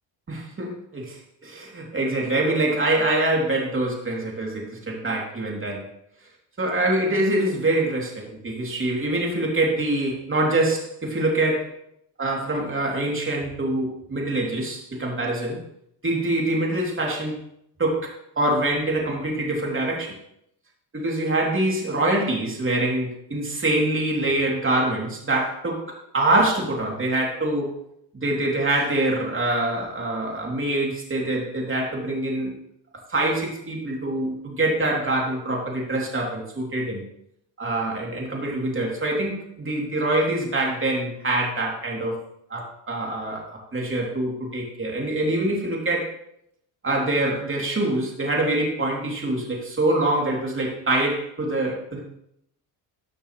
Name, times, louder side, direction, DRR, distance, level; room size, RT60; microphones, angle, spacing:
voice 1, 0.3-5.9 6.6-11.7 12.2-15.6 16.0-17.4 17.8-20.1 20.9-27.7 28.2-32.5 33.1-37.0 37.6-42.2 42.5-43.4 43.7-46.1 46.8-52.0, right 1 dB, 25° right, -2 dB, 3.3 m, -25 dB
13.5 x 6.5 x 3.3 m, 0.75 s
supercardioid pair, 65°, 50 cm